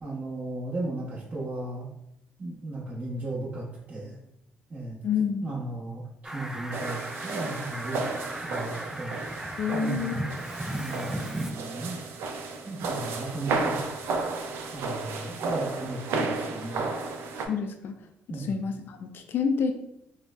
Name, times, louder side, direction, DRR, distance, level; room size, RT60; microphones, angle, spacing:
voice 1, 0.0-1.9 2.4-4.2 4.7-5.0 5.4-10.3 10.7-12.0 12.6-14.1 14.7-16.8 18.3-18.5, right 2 dB, 40° right, -10 dB, 0.9 m, -36 dB
voice 2, 5.0-5.5 9.6-10.2 17.5-18.0 18.4-19.7, left 6 dB, 60° left, 6 dB, 0.3 m, -28 dB
Fowl, 6.2-11.5, right 1 dB, 10° right, 0.3 m, -36 dB
sound 1, 6.7-17.5, right 3 dB, 80° right, 0.4 m, -33 dB
3.8 x 2.0 x 2.2 m, 0.81 s
cardioid pair, 105°, 4 cm